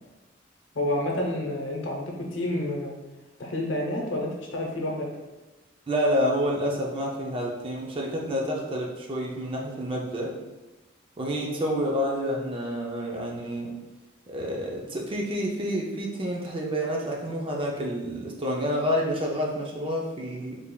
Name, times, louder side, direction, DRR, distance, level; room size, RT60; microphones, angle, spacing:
voice 1, 0.7-2.9 3.4-5.1, left 1 dB, 75° left, 0 dB, 0.7 m, -29 dB
voice 2, 5.9-10.3 11.2-13.7 14.3-20.6, equal, 25° right, -1 dB, 0.4 m, -28 dB
3.7 x 3.3 x 2.2 m, 1.1 s
head